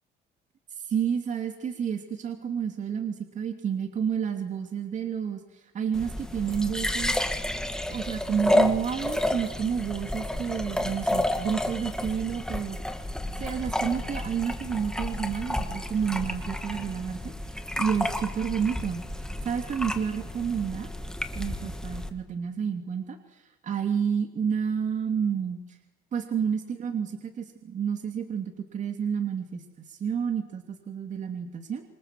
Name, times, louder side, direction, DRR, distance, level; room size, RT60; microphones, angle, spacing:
voice 1, 0.8-7.2 7.9-12.8 13.4-20.9 21.3-25.6 26.1-31.8, right 7 dB, 45° right, 5 dB, 2.9 m, -30 dB
sound 1, 5.9-22.1, left 1 dB, 5° left, 2.3 m, -31 dB
27.0 x 27.0 x 7.7 m, 0.91 s
cardioid pair, 110°, 17 cm